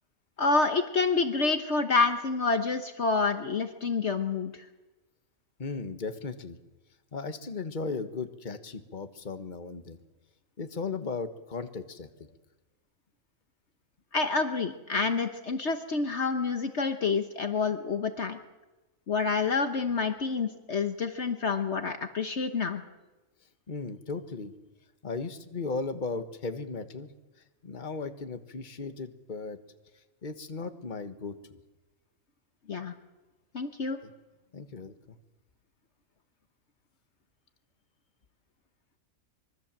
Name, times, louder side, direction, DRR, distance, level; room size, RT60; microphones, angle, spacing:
voice 1, 0.4-4.6 14.1-18.4 19.1-22.8 32.7-32.9 33.5-34.0, left 4 dB, 55° left, 8 dB, 1.4 m, -28 dB
voice 2, 5.6-6.6 7.1-10.0 10.6-12.3 23.7-24.5 25.0-27.1 27.6-29.6 30.2-31.6 34.0-34.1 34.5-35.2, left 4 dB, 35° left, 9 dB, 1.5 m, -36 dB
25.5 x 23.0 x 7.5 m, 1.1 s
omnidirectional pair, 1.4 m